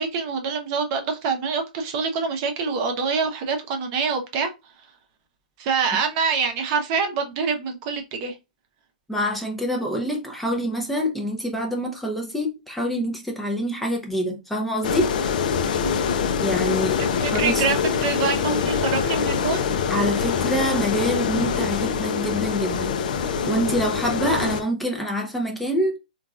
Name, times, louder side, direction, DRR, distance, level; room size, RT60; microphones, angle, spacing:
voice 1, 0.0-4.5 5.6-8.4 15.6-15.9 17.0-19.6, right 5 dB, 40° right, 0.7 m, -25 dB
voice 2, 9.1-15.1 16.4-17.0 17.3-17.6 19.9-26.0, equal, 5° left, 0.5 m, -26 dB
sound 1, 14.8-24.6, left 6 dB, 60° left, 0.5 m, -24 dB
3.8 x 2.3 x 2.4 m
hypercardioid pair, 125°, 5 cm